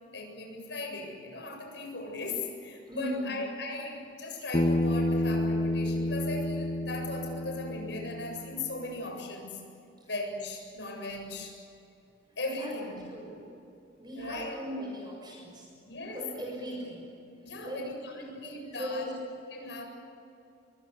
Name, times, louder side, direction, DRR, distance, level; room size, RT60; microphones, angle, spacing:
voice 1, 0.1-9.7 10.0-11.6 12.4-13.0 14.1-14.5 15.9-16.3 17.4-19.2 19.5-19.9, left 2 dB, 75° left, 2 dB, 7.8 m, -38 dB
voice 2, 2.9-3.3 10.0-10.1 12.3-12.7 13.1-13.5 14.0-15.7 16.1-17.1 17.6-19.1, equal, 25° right, -1 dB, 6.8 m, -39 dB
Bass guitar, 4.5-8.9, left 1 dB, 30° left, 0.8 m, -30 dB
26.5 x 23.5 x 8.3 m, 2.7 s
head